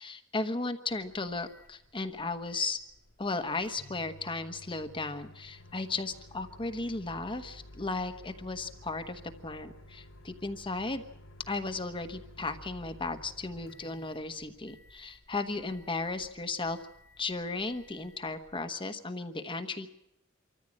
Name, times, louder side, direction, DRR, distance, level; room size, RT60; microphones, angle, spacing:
voice 1, 0.0-2.8 3.2-11.0 11.5-16.8 17.2-19.9, left 3 dB, 25° left, 7 dB, 1.2 m, -35 dB
Microwave oven, 0.9-18.8, left 1 dB, 90° left, 3.1 m, -54 dB
25.5 x 14.0 x 8.7 m, 0.79 s
head